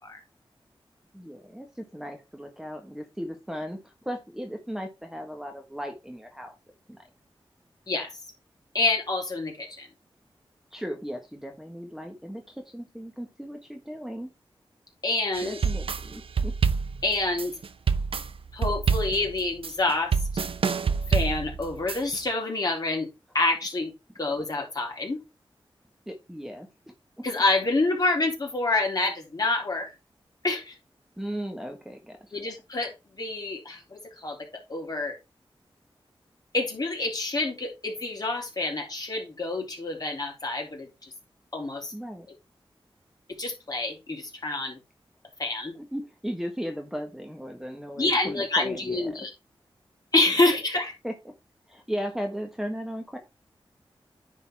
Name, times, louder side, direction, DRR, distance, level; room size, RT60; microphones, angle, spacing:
voice 1, 1.1-6.6 6.9-7.0 10.7-14.3 15.4-16.5 26.1-26.7 31.2-32.5 41.9-42.3 45.7-49.3 51.0-51.1 51.7-53.2, equal, 5° right, 4 dB, 1.4 m, -36 dB
voice 2, 8.7-9.9 15.0-15.6 17.0-17.5 18.5-20.1 21.1-23.1 23.3-25.2 27.2-29.9 30.4-30.8 32.3-32.9 33.2-34.4 34.7-35.2 36.5-41.1 41.5-41.9 43.4-44.8 45.4-45.7 48.0-49.3 50.1-50.9, left 2 dB, 45° left, 0 dB, 3.5 m, -27 dB
sound 1, 15.3-22.2, right 5 dB, 75° right, 0.7 m, -27 dB
9.8 x 4.1 x 4.6 m, 0.25 s
wide cardioid pair, 75°, 9 cm